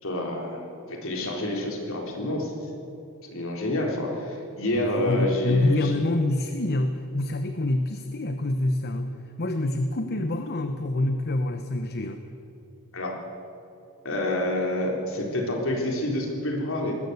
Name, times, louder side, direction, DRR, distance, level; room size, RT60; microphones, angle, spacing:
voice 1, 0.0-2.5 3.3-5.9 12.9-13.2 14.0-16.9, left 1 dB, 60° left, 1 dB, 3.8 m, -28 dB
voice 2, 4.7-9.1 9.4-12.2, left 2 dB, 45° left, 8 dB, 0.9 m, -26 dB
20.5 x 16.5 x 8.1 m, 2.9 s
head